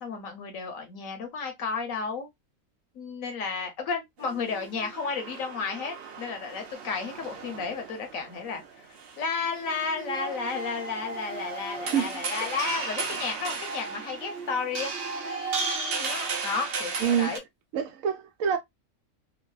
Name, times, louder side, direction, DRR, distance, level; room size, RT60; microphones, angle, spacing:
voice 1, 0.0-2.3 2.9-8.6 9.2-17.4, left 5 dB, 75° left, 1.2 m, -33 dB
sound 1, 4.2-17.4, right 4 dB, 55° right, 0.7 m, -35 dB
voice 2, 17.7-18.6, right 8 dB, 75° right, 1.0 m, -26 dB
3.1 x 2.2 x 2.3 m
omnidirectional pair, 1.4 m